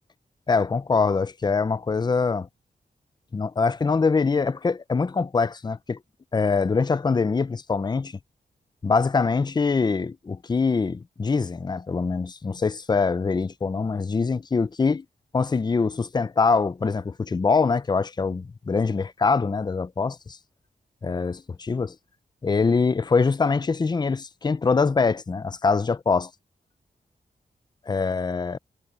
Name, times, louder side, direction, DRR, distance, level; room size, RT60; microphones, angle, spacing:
voice 1, 0.5-2.5 3.3-6.0 6.3-8.2 8.8-15.0 15.3-20.4 21.0-21.9 22.4-26.3 27.9-28.6, left 4 dB, 25° left, 0.5 m, -24 dB
wide cardioid pair, 130°, 16 cm